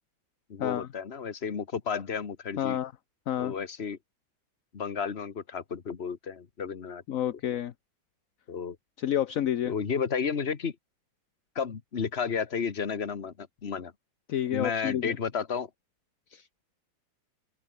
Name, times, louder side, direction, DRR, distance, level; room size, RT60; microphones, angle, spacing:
voice 1, 0.5-2.8 3.4-4.0 4.7-7.0 8.5-8.8 9.7-10.7 11.5-13.9 14.5-15.7, left 6 dB, 35° left, 1.6 m, -32 dB
voice 2, 2.6-2.9 3.3-3.5 7.1-7.7 9.0-9.7 14.3-15.2 16.3-16.5, left 11 dB, 55° left, 1.0 m, -29 dB
open air
omnidirectional pair, 2.1 m